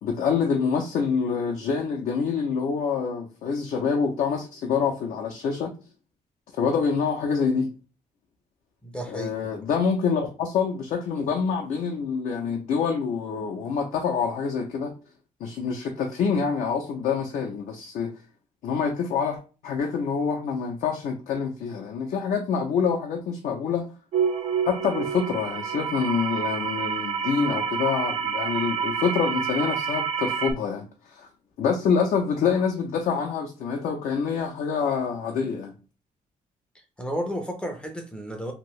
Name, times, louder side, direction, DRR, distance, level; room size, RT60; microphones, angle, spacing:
voice 1, 0.0-5.7 6.6-7.7 9.1-14.9 15.4-18.1 18.6-23.9 24.7-31.3 31.6-35.7, left 6 dB, 60° left, 0.5 m, -26 dB
voice 2, 8.8-9.5 37.0-38.5, equal, 5° left, 0.4 m, -32 dB
sound 1, 24.1-30.5, right 7 dB, 55° right, 0.4 m, -28 dB
2.8 x 2.6 x 3.1 m
cardioid pair, 180°, 15 cm